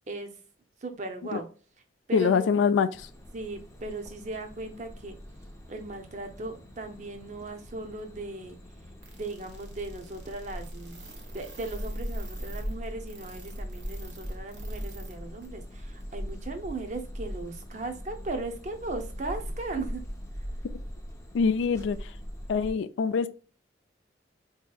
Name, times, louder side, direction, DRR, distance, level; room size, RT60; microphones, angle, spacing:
voice 1, 0.8-1.5 2.1-2.5 3.3-5.2 5.7-8.6 9.2-20.0, right 2 dB, 40° right, 0.5 m, -37 dB
voice 2, 2.1-3.1 21.3-22.1 22.5-23.3, left 6 dB, 85° left, 0.3 m, -24 dB
sound 1, 2.9-22.7, equal, 15° left, 0.5 m, -40 dB
sound 2, 9.0-15.1 15.4-15.5 16.0-16.1, right 3 dB, 75° right, 1.1 m, -49 dB
4.1 x 2.7 x 2.2 m
head